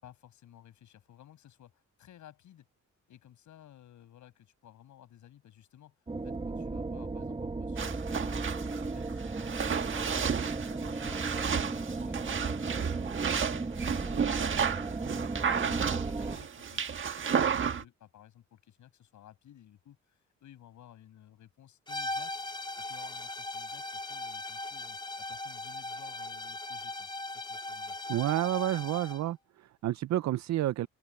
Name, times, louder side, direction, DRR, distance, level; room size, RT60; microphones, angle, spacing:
voice 1, 0.0-2.7 3.1-8.4 8.9-13.6 14.0-16.8 17.2-22.4 22.8-27.1 27.3-28.0, left 11 dB, 75° left, 6.1 m, -56 dB
sound 1, 6.1-16.4, right 3 dB, 20° right, 1.5 m, -36 dB
sound 2, 7.8-17.8, right 7 dB, 40° right, 1.5 m, -32 dB
sound 3, 21.9-29.3, left 2 dB, 15° left, 3.9 m, -39 dB
voice 2, 28.1-30.9, right 14 dB, 65° right, 0.6 m, -30 dB
open air
cardioid pair, 90°, 30 cm